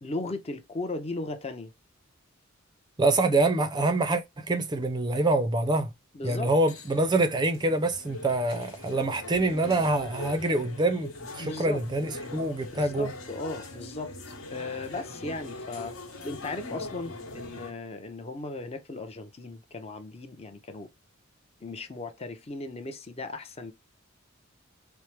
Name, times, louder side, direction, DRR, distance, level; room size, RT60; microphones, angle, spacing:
voice 1, 0.0-1.7 6.1-6.5 11.4-11.8 12.6-15.9 16.2-20.9 21.6-23.7, left 2 dB, 30° left, 0.5 m, -37 dB
voice 2, 3.0-5.9 6.2-11.1 11.4-13.1, right 2 dB, 20° right, 0.5 m, -25 dB
sound 1, 6.4-17.7, left 2 dB, 75° left, 1.2 m, -42 dB
4.4 x 2.0 x 3.1 m
head